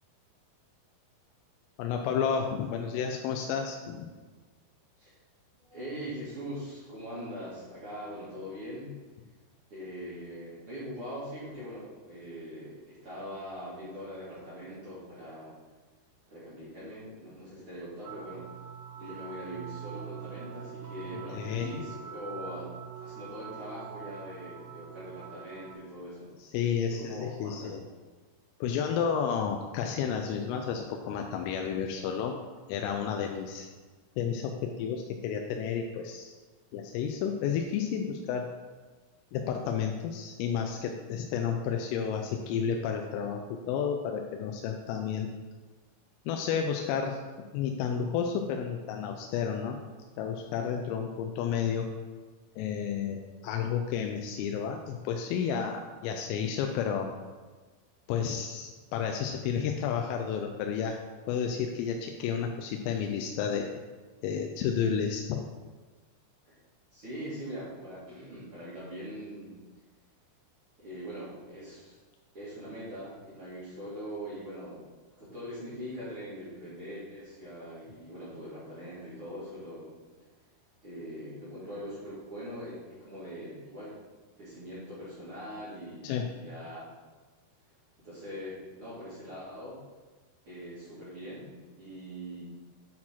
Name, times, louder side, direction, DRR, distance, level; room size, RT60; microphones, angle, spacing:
voice 1, 1.8-4.1 21.1-21.7 26.5-27.8 28.6-32.4 32.7-33.7 34.2-36.3 36.7-38.5 39.3-45.3 46.3-47.2 47.5-49.8 50.2-51.9 52.6-57.1 58.1-61.0 61.3-63.7 64.2-65.5 86.0-86.3, left 7 dB, 85° left, 3 dB, 3.2 m, -31 dB
voice 2, 5.6-9.0 9.7-15.6 16.3-18.5 19.0-22.8 23.0-26.3 26.9-27.8 66.4-66.5 66.9-69.5 70.8-71.9 72.3-74.8 75.2-79.9 80.8-84.0 84.4-86.8 88.0-89.8 90.4-91.5 91.8-92.4, equal, 55° right, -10 dB, 1.5 m, -42 dB
sound 1, 18.1-25.8, right 7 dB, 85° right, 3.3 m, -43 dB
8.7 x 4.2 x 4.4 m, 1.3 s
omnidirectional pair, 5.7 m